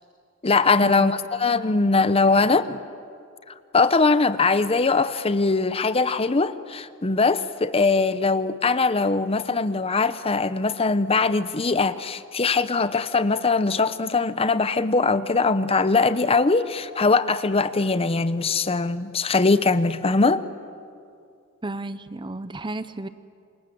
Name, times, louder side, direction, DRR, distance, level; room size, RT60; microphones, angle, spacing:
voice 1, 0.4-2.8 3.7-20.4, left 3 dB, 25° left, 14 dB, 0.7 m, -21 dB
voice 2, 21.6-23.1, right 2 dB, 20° right, 14 dB, 0.7 m, -32 dB
28.5 x 26.5 x 7.9 m, 2.4 s
head